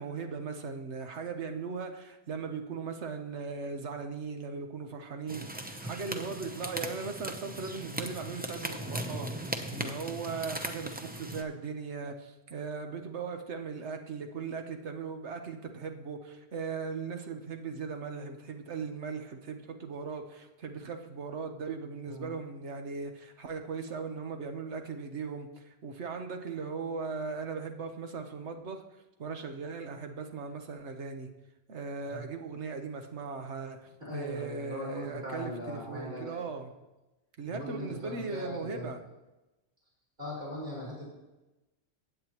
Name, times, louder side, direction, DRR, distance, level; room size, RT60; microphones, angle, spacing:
voice 1, 0.0-28.8 29.2-31.3 31.7-36.7 37.4-39.0, right 5 dB, 85° right, 5 dB, 1.3 m, -38 dB
sound 1, 5.3-11.4, right 1 dB, 10° right, 0.6 m, -38 dB
voice 2, 34.0-36.4 37.5-38.9 40.2-41.1, equal, 45° right, -7 dB, 4.9 m, -39 dB
16.0 x 9.0 x 3.0 m, 1.0 s
omnidirectional pair, 1.1 m